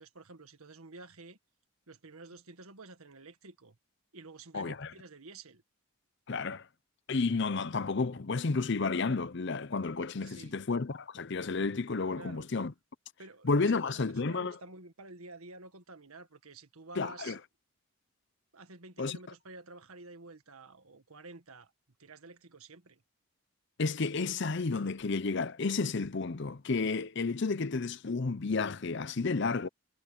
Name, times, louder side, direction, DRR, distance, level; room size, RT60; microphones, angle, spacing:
voice 1, 0.0-1.4 1.9-3.8 4.1-5.6 10.2-10.6 12.2-12.5 13.2-14.0 14.3-17.4 18.5-21.7 22.0-23.0, right 3 dB, 80° right, 1.8 m, -50 dB
voice 2, 4.5-4.9 6.3-6.7 7.1-12.7 13.4-14.6 17.0-17.4 19.0-19.2 23.8-29.7, left 4 dB, 50° left, 0.6 m, -31 dB
head